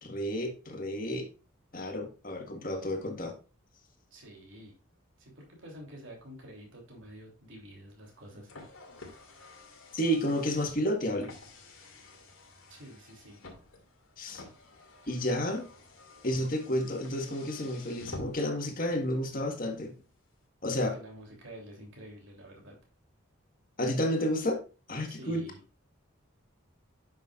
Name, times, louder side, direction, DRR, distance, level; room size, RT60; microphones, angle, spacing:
voice 1, 0.0-1.3 1.7-3.4 9.9-11.3 14.2-14.4 15.1-15.7 16.2-19.9 20.6-20.9 23.8-24.6 24.9-25.4, equal, 40° left, 1.6 m, -31 dB
voice 2, 4.1-4.7 5.2-8.5 12.7-13.4 20.7-22.8 25.1-25.6, right 1 dB, 65° right, 3.2 m, -48 dB
Car, 8.0-18.7, left 2 dB, 90° left, 2.4 m, -50 dB
9.7 x 6.4 x 2.5 m
head